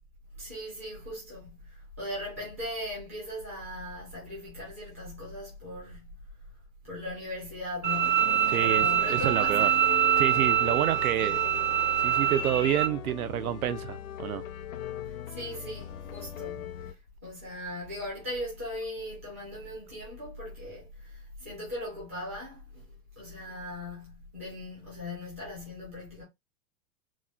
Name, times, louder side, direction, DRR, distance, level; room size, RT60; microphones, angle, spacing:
voice 1, 0.4-6.1 6.8-9.8 11.2-11.4 15.1-16.9 17.2-22.8 23.2-26.2, left 1 dB, 10° right, 0.4 m, -39 dB
Bowed string instrument, 7.8-12.9, right 9 dB, 50° right, 1.5 m, -25 dB
sound 1, 8.2-16.9, left 10 dB, 60° left, 0.7 m, -40 dB
voice 2, 8.5-9.7 10.2-11.4 12.0-14.4, right 11 dB, 70° right, 0.6 m, -29 dB
4.0 x 2.3 x 2.3 m
hypercardioid pair, 180°, 44 cm